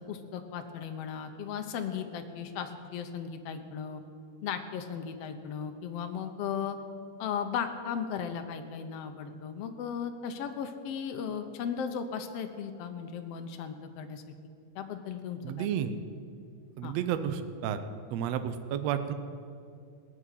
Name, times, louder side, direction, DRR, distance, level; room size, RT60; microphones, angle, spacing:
voice 1, 0.1-4.0 4.4-6.8 7.2-14.2 14.7-15.8 16.8-17.0, left 7 dB, 70° left, 7 dB, 1.5 m, -36 dB
voice 2, 15.4-15.9 16.8-17.8 18.1-19.1, right 9 dB, 75° right, 10 dB, 1.6 m, -31 dB
17.5 x 6.1 x 9.2 m, 2.4 s
omnidirectional pair, 3.7 m